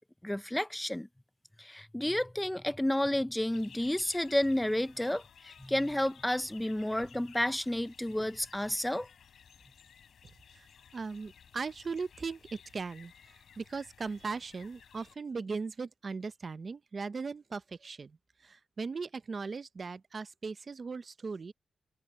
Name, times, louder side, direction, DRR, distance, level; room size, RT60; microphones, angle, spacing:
voice 1, 0.2-1.1 1.6-9.1, left 1 dB, 5° left, 0.6 m, -31 dB
sound 1, 3.5-15.2, left 8 dB, 85° left, 7.2 m, -57 dB
voice 2, 10.5-21.5, right 4 dB, 40° right, 0.6 m, -39 dB
wide cardioid pair, 145°, 0 cm